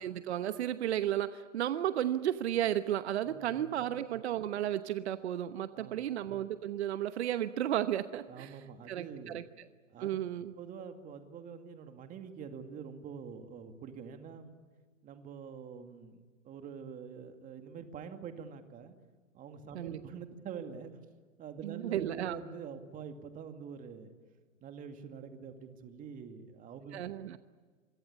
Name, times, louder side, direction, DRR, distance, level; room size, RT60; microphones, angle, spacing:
voice 1, 0.0-8.5 8.9-9.4 10.0-10.5 19.7-20.0 21.6-22.4 26.9-27.4, right 11 dB, 55° right, 12 dB, 1.1 m, -33 dB
voice 2, 3.2-3.7 5.7-6.0 8.3-9.4 9.9-10.2 10.6-14.5 15.0-18.9 19.3-20.9 21.4-24.1 24.6-27.0, right 6 dB, 20° right, 7 dB, 2.3 m, -46 dB
27.0 x 23.5 x 8.4 m, 1.5 s
hypercardioid pair, 130°, 40 cm